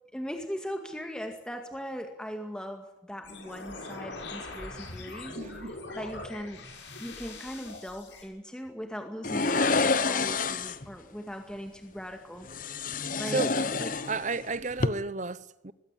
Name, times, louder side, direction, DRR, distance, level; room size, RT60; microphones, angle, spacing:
voice 1, 0.1-6.6 7.0-12.5 13.2-13.9, equal, 5° left, 2.1 m, -39 dB
sound 1, 3.2-8.2, left 2 dB, 70° left, 7.3 m, -42 dB
voice 2, 5.4-5.8 13.2-13.5 14.1-15.7, right 3 dB, 40° right, 0.9 m, -32 dB
sound 2, 9.2-10.9 12.5-14.4 14.7-14.9, left 4 dB, 45° left, 1.0 m, -28 dB
21.5 x 16.5 x 9.1 m
head